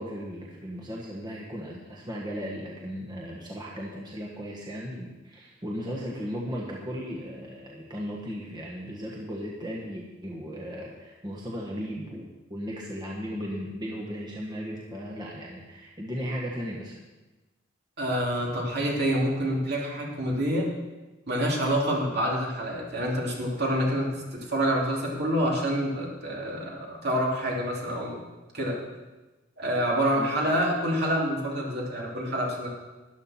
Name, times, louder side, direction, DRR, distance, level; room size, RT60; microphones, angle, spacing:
voice 1, 0.0-16.9 30.1-30.6, equal, 20° right, -4 dB, 1.5 m, -36 dB
voice 2, 18.0-20.7 21.3-28.2 28.5-28.8 29.6-32.7, equal, 55° right, -3 dB, 2.9 m, -27 dB
13.0 x 11.0 x 4.4 m, 1.1 s
head